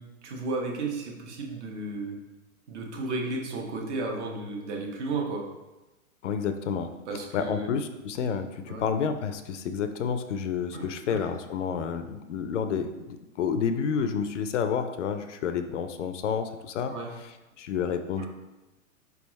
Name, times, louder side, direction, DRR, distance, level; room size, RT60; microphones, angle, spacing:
voice 1, 0.0-2.2 2.7-5.4 7.1-7.7 8.7-8.8 10.7-11.2 16.9-17.1 18.2-18.3, right 3 dB, 55° right, 0 dB, 1.1 m, -33 dB
voice 2, 6.2-6.9 7.3-16.9 17.2-18.3, left 7 dB, 60° left, 9 dB, 0.5 m, -30 dB
4.7 x 3.5 x 3.1 m, 1.1 s
hypercardioid pair, 125°, 42 cm